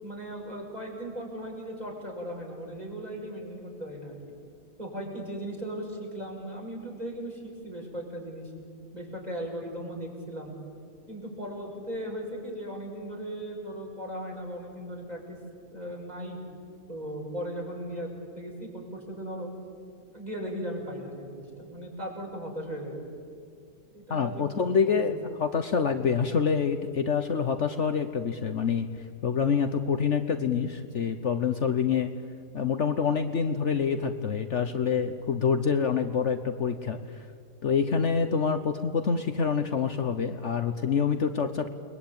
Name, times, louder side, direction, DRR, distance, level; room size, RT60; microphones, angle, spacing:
voice 1, 0.0-4.1 4.8-8.5 8.9-10.5 11.1-15.4 15.7-16.4 16.9-19.5 20.1-23.2 23.9-24.4 24.7-25.0, equal, 25° right, 0 dB, 6.3 m, -37 dB
voice 2, 24.1-28.9 29.2-32.1 32.5-37.2 37.6-41.7, left 6 dB, 55° left, 8 dB, 1.2 m, -26 dB
29.5 x 21.5 x 8.8 m, 2.3 s
omnidirectional pair, 1.5 m